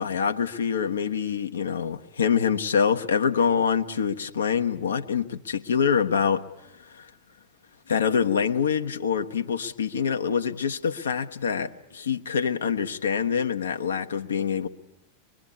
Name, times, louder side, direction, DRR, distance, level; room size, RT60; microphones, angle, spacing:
voice 1, 0.0-6.5 6.9-7.1 7.9-14.7, left 6 dB, 70° left, 6 dB, 1.1 m, -25 dB
24.5 x 22.5 x 8.5 m, 0.93 s
figure-of-eight pair, 90°, 0 cm